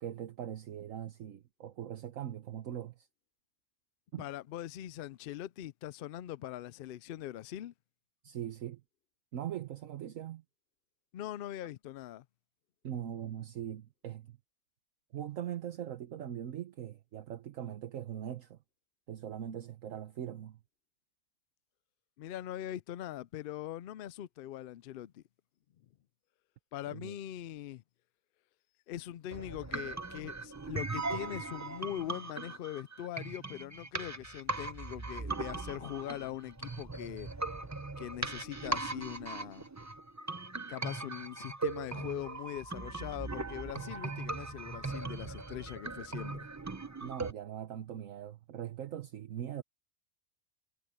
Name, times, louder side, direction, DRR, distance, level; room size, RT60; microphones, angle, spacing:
voice 1, 0.0-3.1 4.1-4.2 8.2-8.8 9.3-10.4 12.8-14.4 15.1-18.6 19.1-20.6 26.9-27.1 47.0-49.6, right 10 dB, 65° right, 1.3 m, -41 dB
voice 2, 4.2-7.7 11.1-12.2 22.2-25.2 26.7-27.8 28.9-37.3 38.0-39.7 40.7-46.5, left 12 dB, 90° left, 0.4 m, -42 dB
sound 1, 29.3-47.3, right 3 dB, 25° right, 0.4 m, -39 dB
omnidirectional pair, 1.5 m